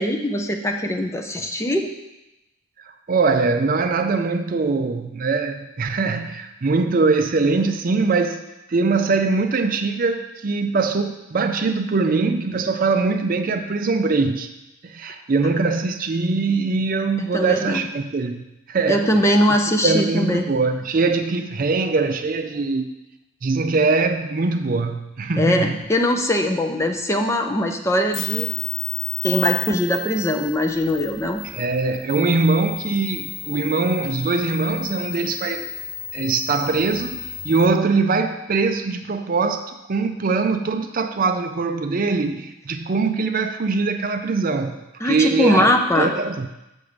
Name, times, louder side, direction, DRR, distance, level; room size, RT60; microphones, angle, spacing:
voice 1, 0.0-1.9 17.3-17.8 18.9-20.4 25.4-28.5 29.2-31.4 45.0-46.1, left 1 dB, 15° left, 4 dB, 0.6 m, -21 dB
voice 2, 3.1-8.4 8.7-14.5 14.8-19.1 19.8-22.9 23.4-25.8 31.5-35.6 36.1-44.8 45.0-46.5, right 3 dB, 40° right, 7 dB, 0.4 m, -22 dB
sound 1, 28.1-37.7, left 5 dB, 60° left, 0.7 m, -32 dB
6.9 x 6.7 x 5.1 m, 0.95 s
head